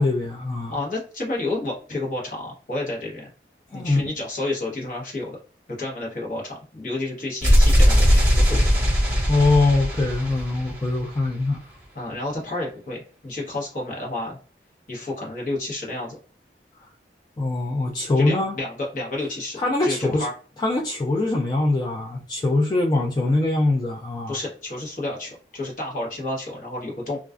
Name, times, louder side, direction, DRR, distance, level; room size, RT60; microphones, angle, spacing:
voice 1, 0.0-0.8 3.7-4.0 9.3-11.6 17.4-18.6 19.6-20.3 20.6-24.4, left 2 dB, 25° left, -1 dB, 0.3 m, -22 dB
voice 2, 0.7-3.3 3.7-5.4 5.7-8.8 11.9-14.4 14.9-16.2 18.2-20.3 24.3-27.2, left 2 dB, 45° left, -3 dB, 1.0 m, -30 dB
sound 1, 7.4-11.3, equal, 15° right, 1.0 m, -19 dB
2.3 x 2.2 x 2.4 m, 0.39 s
head